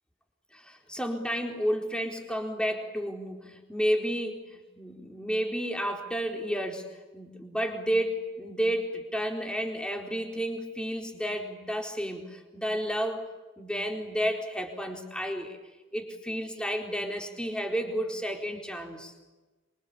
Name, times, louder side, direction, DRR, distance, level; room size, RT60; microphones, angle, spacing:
voice 1, 0.5-6.9 7.1-13.2 13.6-15.6 15.9-19.1, equal, 5° left, 3 dB, 4.2 m, -31 dB
27.5 x 25.0 x 8.6 m, 1.2 s
head